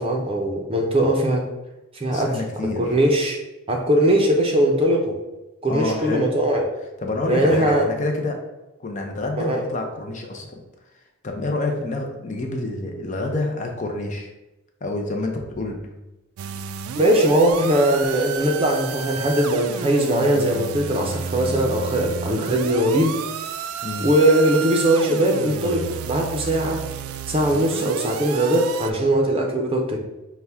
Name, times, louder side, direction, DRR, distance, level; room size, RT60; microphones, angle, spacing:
voice 1, 0.0-1.5 1.9-2.4 2.8-3.4 3.7-5.2 5.6-6.6 7.3-7.9 9.4-9.6 16.9-23.3 24.0-26.9 27.3-30.0, right 1 dB, 25° right, 1 dB, 0.5 m, -20 dB
voice 2, 2.1-3.0 5.6-6.3 7.0-8.4 8.8-10.6 11.2-14.3 14.8-16.0 23.8-24.1, left 2 dB, 35° left, 2 dB, 0.5 m, -28 dB
sound 1, 16.4-28.9, right 7 dB, 85° right, 0.3 m, -31 dB
5.7 x 2.2 x 3.4 m, 1.0 s
head